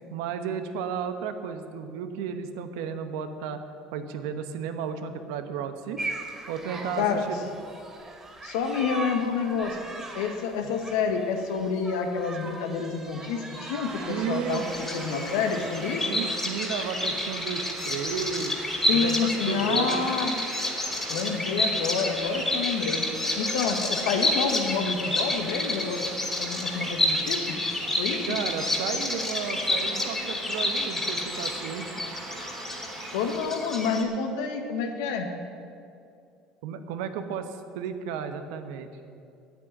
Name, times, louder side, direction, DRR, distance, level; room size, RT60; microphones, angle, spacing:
voice 1, 0.1-3.6 3.9-6.0 6.5-7.4 10.6-10.7 14.1-14.7 16.0-18.5 18.9-20.1 28.3-31.9 36.6-38.9, right 7 dB, 85° right, 8 dB, 1.0 m, -33 dB
sound 1, 6.0-15.7, right 2 dB, 20° right, 2.5 m, -40 dB
voice 2, 8.4-9.8 10.1-16.0 18.8-20.3 21.1-23.1 23.3-26.1 26.4-27.6 28.0-28.4 33.1-35.3, left 5 dB, 85° left, 5 dB, 1.4 m, -28 dB
sound 2, 13.8-33.4, right 4 dB, 50° right, 2.6 m, -42 dB
Bird vocalization bird call bird song, 14.5-34.0, left 1 dB, 15° left, 2.5 m, -29 dB
9.5 x 8.8 x 9.3 m, 2.5 s
supercardioid pair, 95°, 2 cm